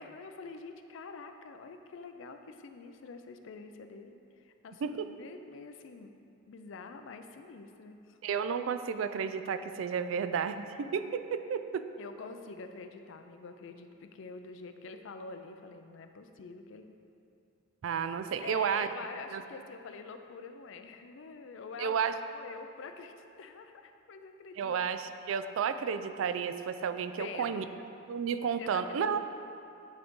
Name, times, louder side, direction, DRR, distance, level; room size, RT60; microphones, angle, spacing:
voice 1, 0.0-6.1 6.5-8.2 12.0-17.0 18.4-22.0 22.3-24.8 27.2-27.8 28.6-29.2, left 4 dB, 70° left, 7 dB, 0.4 m, -46 dB
voice 2, 8.2-11.9 17.8-18.9 19.3-19.4 21.8-22.1 24.6-27.6 28.1-29.2, right 7 dB, 75° right, 10 dB, 0.3 m, -32 dB
9.6 x 3.8 x 3.6 m, 2.6 s
head